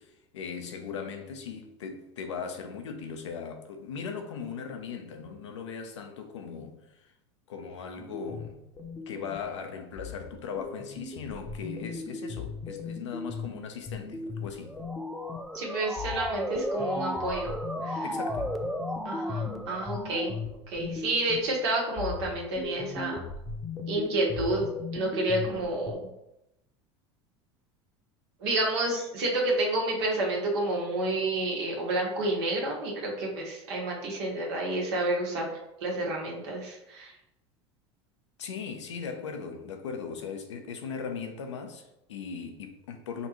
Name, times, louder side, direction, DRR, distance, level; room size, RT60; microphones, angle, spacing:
voice 1, 0.0-7.1 7.5-8.6 9.1-14.8 18.0-18.6 38.4-43.3, left 6 dB, 85° left, 0.7 m, -38 dB
sound 1, 8.0-9.5 10.0-15.6 16.0-21.6 22.0-25.9, left 4 dB, 25° left, 0.8 m, -38 dB
Motor vehicle (road) / Siren, 14.6-20.5, equal, ahead, 0.4 m, -35 dB
voice 2, 15.5-17.5 17.8-18.0 19.0-20.3 20.7-23.2 23.9-24.6 24.9-26.1 28.4-35.5 35.8-37.1, right 2 dB, 70° right, 1.4 m, -29 dB
5.1 x 2.5 x 3.0 m
hypercardioid pair, 85°, 15 cm